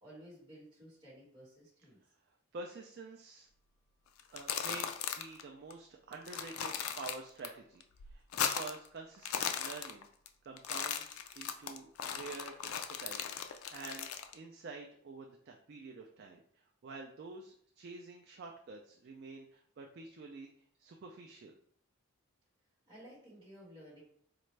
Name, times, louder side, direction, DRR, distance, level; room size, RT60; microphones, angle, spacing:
voice 1, 0.0-2.0 22.9-24.0, equal, 20° right, -9 dB, 1.3 m, -54 dB
voice 2, 2.5-3.5 4.3-10.1 10.4-20.5 20.8-21.6, right 3 dB, 50° right, 2 dB, 0.3 m, -48 dB
sound 1, 4.2-5.4 5.7-5.8 6.1-7.5 7.8-8.9 9.1-10.3 10.6-14.3, left 8 dB, 75° left, 0.4 m, -37 dB
4.2 x 2.4 x 3.1 m, 0.63 s
head